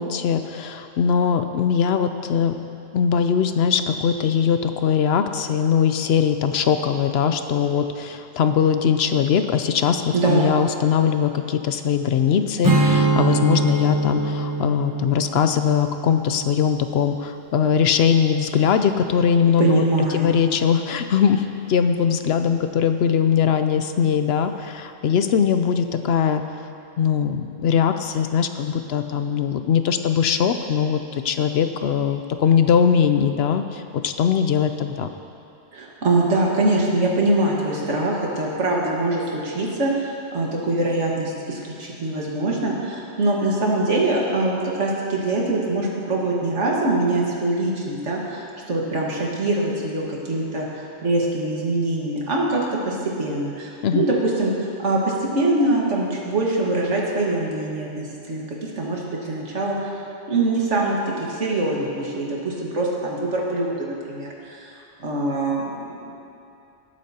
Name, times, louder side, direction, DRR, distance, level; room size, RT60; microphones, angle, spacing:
voice 1, 0.0-2.5 2.9-19.8 20.1-26.4 27.0-35.1 53.8-54.0, left 7 dB, 65° left, 8 dB, 0.8 m, -21 dB
voice 2, 10.1-10.5 19.6-20.3 35.7-54.5 54.8-59.9 60.3-64.7 65.0-65.8, right 2 dB, 85° right, -3 dB, 2.0 m, -23 dB
Strum, 12.6-18.0, right 3 dB, 20° right, 0.7 m, -24 dB
19.0 x 8.4 x 2.9 m, 2.6 s
omnidirectional pair, 1.2 m